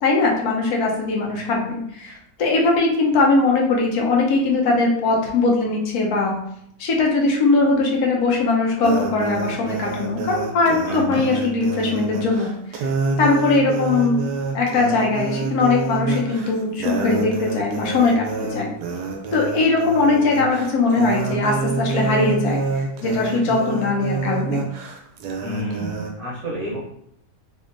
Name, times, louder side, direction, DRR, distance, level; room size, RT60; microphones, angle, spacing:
voice 1, 0.0-6.3 6.8-12.8 13.2-14.2 14.5-18.7 19.3-24.6, left 3 dB, 75° left, 0 dB, 1.1 m, -20 dB
sound 1, 8.8-26.1, right 4 dB, 90° right, 1.1 m, -27 dB
voice 2, 10.9-11.2 25.4-26.8, equal, 60° right, -4 dB, 0.8 m, -30 dB
2.8 x 2.5 x 2.5 m, 0.73 s
omnidirectional pair, 1.6 m